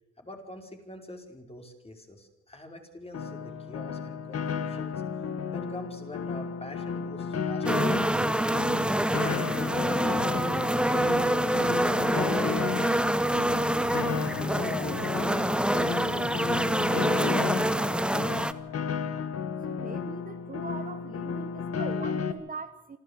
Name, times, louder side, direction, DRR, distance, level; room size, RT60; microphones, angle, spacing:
voice 1, 0.2-5.0 5.5-8.6 9.1-11.5 11.9-14.0 14.5-18.5, left 1 dB, 20° left, 3 dB, 4.8 m, -44 dB
Piano, 3.1-22.3, left 6 dB, 55° left, 1.8 m, -33 dB
sound 1, 7.6-18.5, right 1 dB, 5° right, 0.9 m, -26 dB
voice 2, 19.7-23.0, right 4 dB, 30° right, 9 dB, 1.2 m, -41 dB
27.5 x 12.5 x 8.1 m, 0.95 s
cardioid pair, 90°, 30 cm